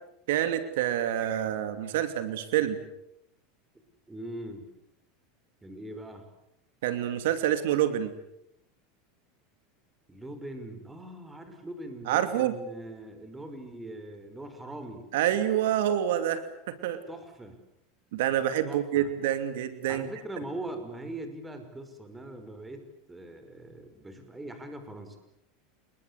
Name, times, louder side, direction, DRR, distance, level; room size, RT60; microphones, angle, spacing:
voice 1, 0.3-2.8 6.8-8.1 12.1-12.5 15.1-17.0 18.1-20.1, right 11 dB, 80° right, 10 dB, 2.7 m, -27 dB
voice 2, 4.1-4.7 5.6-6.3 10.1-15.1 17.1-17.6 18.6-19.1 19.9-25.2, right 1 dB, 10° right, 7 dB, 5.5 m, -41 dB
28.5 x 21.5 x 8.3 m, 0.80 s
supercardioid pair, 125°, 0 cm